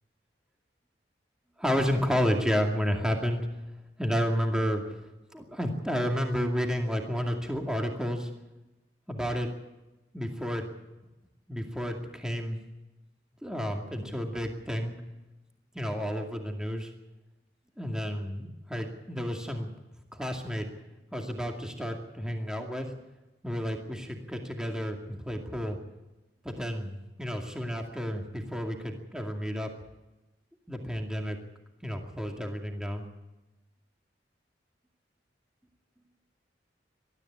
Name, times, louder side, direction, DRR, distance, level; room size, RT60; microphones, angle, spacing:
voice 1, 1.6-3.5 4.0-4.8 5.3-8.3 9.1-9.5 10.1-10.7 11.5-12.6 13.4-14.9 15.7-16.9 17.8-19.7 20.1-20.7 21.1-22.9 23.4-25.8 26.4-29.7 30.7-31.4 31.8-33.0, equal, 5° right, 3 dB, 2.3 m, -31 dB
21.0 x 13.5 x 9.9 m, 1.0 s
head